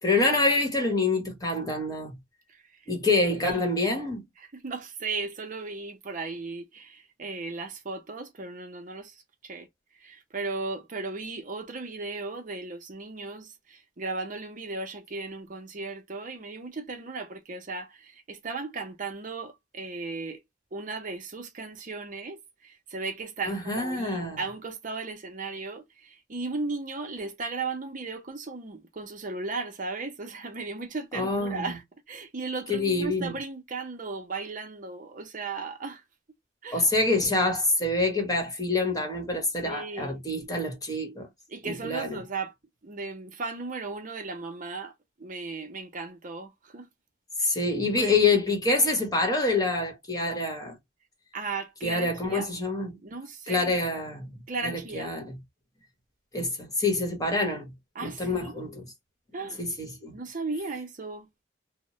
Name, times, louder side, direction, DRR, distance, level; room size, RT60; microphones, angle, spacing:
voice 1, 0.0-2.2 2.9-4.2 23.4-24.4 31.1-31.8 32.7-33.3 36.7-41.3 41.6-42.2 47.4-50.8 51.8-53.0 53.5-55.4 56.3-57.7 58.0-58.9 59.5-60.2, left 2 dB, 20° left, 1.0 m, -26 dB
voice 2, 2.5-2.8 3.5-3.7 4.5-9.7 10.0-20.4 20.7-36.0 36.6-36.8 39.6-40.2 41.5-42.5 42.8-44.9 45.2-46.9 47.4-47.5 48.0-48.2 51.3-52.5 53.0-53.8 54.5-55.1 57.9-58.6 59.3-59.6 60.1-61.3, right 3 dB, 45° right, 0.7 m, -36 dB
2.9 x 2.1 x 2.9 m
head